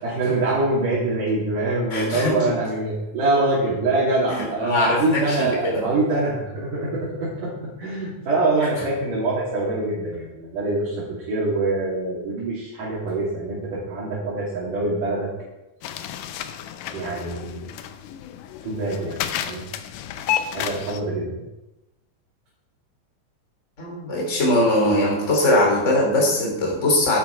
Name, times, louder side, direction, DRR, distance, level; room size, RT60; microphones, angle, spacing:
voice 1, 0.0-7.5 7.8-15.3 16.9-17.6 18.6-19.7 20.5-21.4, right 2 dB, 85° right, -8 dB, 4.6 m, -24 dB
voice 2, 1.9-2.5 4.6-5.9 23.8-27.2, left 1 dB, 20° left, -2 dB, 3.4 m, -21 dB
sound 1, 15.8-21.0, left 10 dB, 90° left, 2.3 m, -31 dB
10.5 x 10.0 x 4.7 m, 0.97 s
omnidirectional pair, 3.6 m